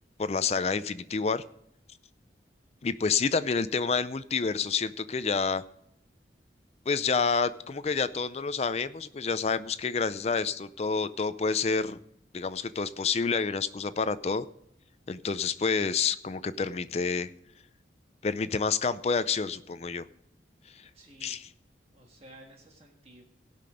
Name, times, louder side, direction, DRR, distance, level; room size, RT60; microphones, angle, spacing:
voice 1, 0.2-1.4 2.8-5.6 6.9-12.0 12.3-14.4 15.1-17.3 18.2-20.1 20.7-20.9 21.2-21.5, left 5 dB, 35° left, 14 dB, 0.4 m, -28 dB
voice 2, 20.8-21.4 21.9-23.2, right 1 dB, 35° right, 1 dB, 1.6 m, -53 dB
17.5 x 5.9 x 5.1 m, 0.76 s
head